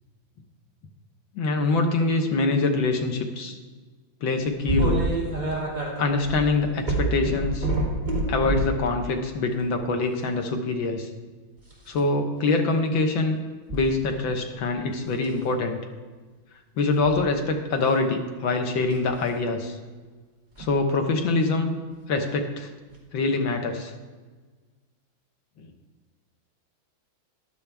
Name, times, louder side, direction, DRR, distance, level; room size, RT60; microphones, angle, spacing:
voice 1, 1.4-3.6 4.2-5.1 6.0-7.7 8.3-11.1 11.9-13.4 13.7-15.8 16.8-19.8 20.6-21.7 22.1-22.7 23.1-23.9 25.6-25.7, left 3 dB, 70° left, 4 dB, 1.8 m, -24 dB
sound 1, 4.7-8.8 9.5-9.8 11.6-12.0 13.7-13.8 14.3-14.7 15.2-15.4 16.9-17.2 18.9-19.1 20.6-20.7 22.2-22.3 22.9-23.0, right 2 dB, 20° right, 2.8 m, -27 dB
14.5 x 11.5 x 3.4 m, 1.4 s
omnidirectional pair, 2.2 m